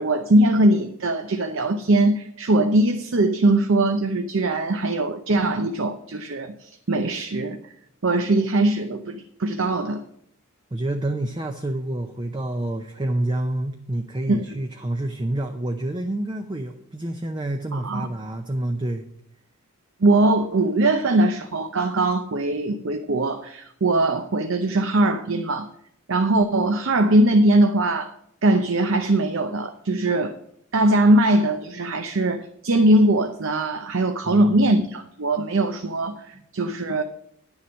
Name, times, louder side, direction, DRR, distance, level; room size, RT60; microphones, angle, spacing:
voice 1, 0.0-7.6 8.0-10.0 14.3-14.6 17.7-18.1 20.0-25.7 26.1-28.1 28.4-30.4 30.7-37.0, right 1 dB, 60° right, 7 dB, 0.7 m, -21 dB
voice 2, 10.7-19.0 34.3-34.6, right 1 dB, 20° right, 5 dB, 0.6 m, -28 dB
10.5 x 7.2 x 6.3 m, 0.71 s
head